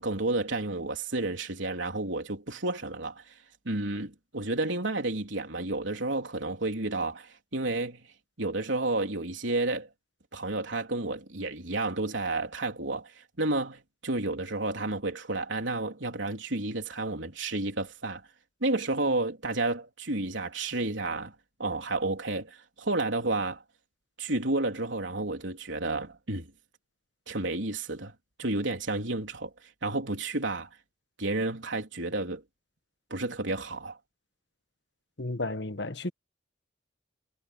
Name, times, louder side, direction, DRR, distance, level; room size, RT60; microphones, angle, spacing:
voice 1, 0.0-3.2 3.7-8.0 8.4-9.9 10.3-13.1 13.4-18.2 18.6-21.3 21.6-23.6 24.2-26.5 27.3-28.1 28.4-29.5 29.8-30.7 31.2-32.4 33.1-34.0, right 2 dB, 85° right, 3.7 m, -31 dB
voice 2, 35.2-36.1, left 2 dB, 65° left, 1.5 m, -33 dB
head